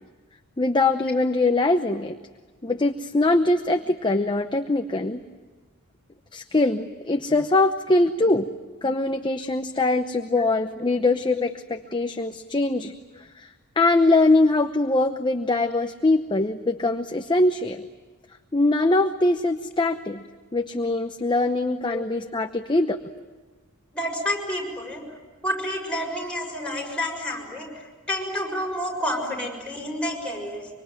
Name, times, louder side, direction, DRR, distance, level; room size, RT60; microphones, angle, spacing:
voice 1, 0.6-2.2 2.6-5.2 6.3-8.5 8.8-13.5 13.8-17.8 18.5-20.2 20.5-23.0, left 2 dB, 20° left, 6 dB, 0.8 m, -22 dB
voice 2, 23.9-25.0 25.4-30.7, left 1 dB, 5° left, 0 dB, 6.5 m, -29 dB
25.0 x 24.5 x 9.1 m, 1.3 s
head